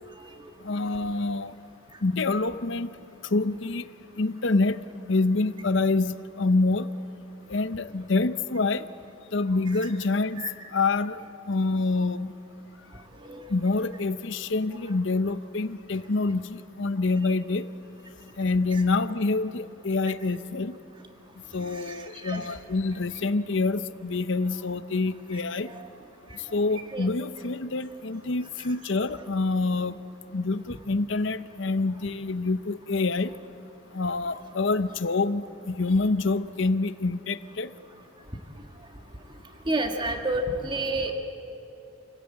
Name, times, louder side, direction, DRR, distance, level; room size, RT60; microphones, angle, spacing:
voice 1, 0.6-1.5 2.0-2.9 3.3-3.9 4.2-4.8 5.1-6.9 7.5-8.9 9.3-10.4 10.7-11.2 11.5-12.3 13.5-17.7 18.4-20.8 21.5-25.7 26.5-29.9 30.3-33.3 33.9-37.7, left 3 dB, 60° left, 13 dB, 0.8 m, -26 dB
voice 2, 39.7-41.1, right 2 dB, 20° right, 4 dB, 1.8 m, -29 dB
28.5 x 17.0 x 9.1 m, 2.9 s
head